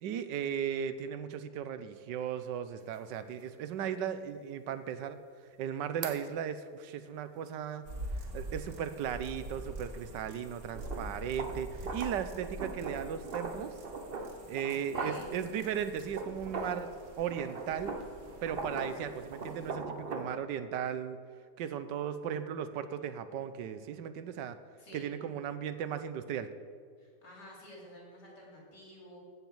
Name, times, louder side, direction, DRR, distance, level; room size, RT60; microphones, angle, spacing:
voice 1, 0.0-5.2 5.6-7.8 8.3-13.7 14.5-16.9 17.2-18.0 18.4-21.2 21.6-24.6 24.9-26.5, right 8 dB, 90° right, 11 dB, 1.4 m, -36 dB
sound 1, 2.8-2.9 3.4-3.5 6.0-6.2 10.7-16.9 17.2-20.4, right 3 dB, 40° right, 1.0 m, -40 dB
sound 2, 7.8-19.7, right 1 dB, 55° right, 2.1 m, -45 dB
voice 2, 14.6-15.3 24.8-25.1 27.0-29.2, equal, 70° left, -3 dB, 4.1 m, -51 dB
15.5 x 6.1 x 7.1 m, 2.1 s
omnidirectional pair, 1.9 m